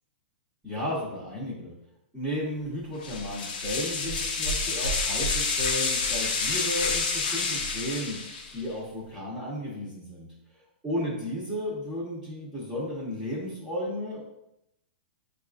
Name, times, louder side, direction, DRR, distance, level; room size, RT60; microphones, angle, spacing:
voice 1, 0.6-1.7 2.1-8.2 8.5-10.3 10.8-14.2, equal, 5° right, -11 dB, 1.1 m, -33 dB
sound 1, 3.0-8.6, left 4 dB, 55° left, 0.6 m, -28 dB
6.1 x 2.5 x 2.5 m, 0.82 s
hypercardioid pair, 160°, 6 cm